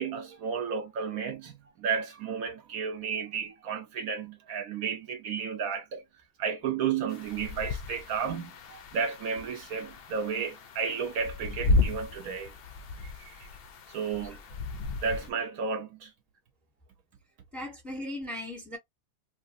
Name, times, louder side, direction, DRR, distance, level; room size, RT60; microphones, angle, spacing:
voice 1, 0.0-6.0 6.4-12.5 13.0-13.5 13.9-14.4 15.0-16.1, right 6 dB, 70° right, 1.0 m, -33 dB
sound 1, 7.1-15.3, left 3 dB, 65° left, 0.6 m, -33 dB
voice 2, 17.5-18.8, left 1 dB, ahead, 0.9 m, -38 dB
3.0 x 2.5 x 2.5 m
omnidirectional pair, 1.7 m